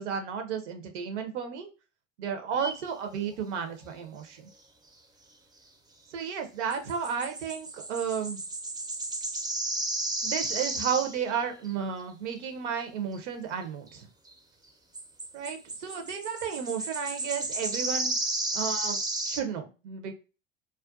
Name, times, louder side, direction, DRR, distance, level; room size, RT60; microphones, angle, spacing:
voice 1, 0.0-1.7 2.2-4.5 6.1-8.4 10.2-14.1 15.3-18.1 18.5-19.0 19.3-20.1, right 7 dB, 70° right, 6 dB, 0.6 m, -33 dB
sound 1, 2.6-2.8 6.7-11.4 11.7-11.8 12.8-12.9 14.3-14.4 14.9-19.4, right 2 dB, 10° right, 0.4 m, -33 dB
2.4 x 2.2 x 2.3 m, 0.32 s
figure-of-eight pair, 65°, 37 cm